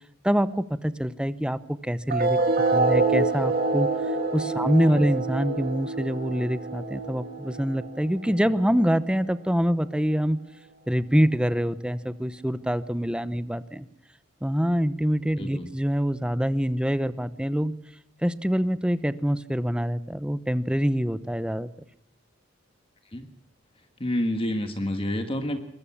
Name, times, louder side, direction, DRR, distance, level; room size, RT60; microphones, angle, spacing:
voice 1, 0.2-2.4 2.7-10.4 10.9-13.9 14.4-17.7 18.2-21.7, equal, 5° right, 14 dB, 0.8 m, -25 dB
sound 1, 2.1-9.1, right 3 dB, 50° right, 2.5 m, -26 dB
voice 2, 15.4-15.7 23.1-23.3 24.0-25.6, left 1 dB, 25° left, 7 dB, 1.5 m, -28 dB
23.0 x 21.5 x 7.3 m, 0.72 s
head